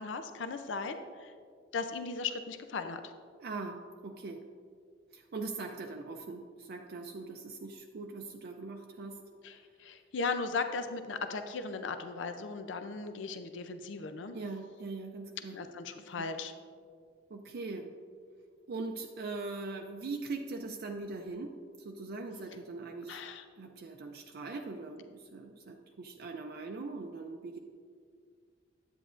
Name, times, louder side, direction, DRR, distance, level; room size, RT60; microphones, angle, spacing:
voice 1, 0.0-1.3 1.7-3.1 9.4-14.4 15.5-16.5 23.1-23.4, left 4 dB, 75° left, 8 dB, 0.5 m, -37 dB
voice 2, 3.4-4.4 5.1-9.2 14.3-15.6 16.2-16.3 17.3-17.9 18.7-23.2 23.6-27.6, right 3 dB, 55° right, 3 dB, 0.4 m, -41 dB
10.0 x 8.5 x 2.5 m, 2.1 s
head